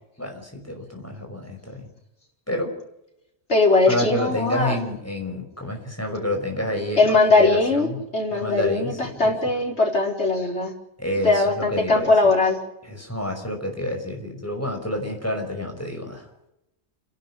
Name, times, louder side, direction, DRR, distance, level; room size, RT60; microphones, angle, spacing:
voice 1, 0.2-1.9 2.5-2.8 3.9-8.0 8.3-9.3 11.0-12.1 12.9-16.3, left 1 dB, 15° left, 2 dB, 5.7 m, -29 dB
voice 2, 3.5-4.8 7.0-10.7 11.2-12.6, left 3 dB, 85° left, 1 dB, 4.7 m, -20 dB
28.5 x 12.0 x 10.0 m, 0.89 s
omnidirectional pair, 1.1 m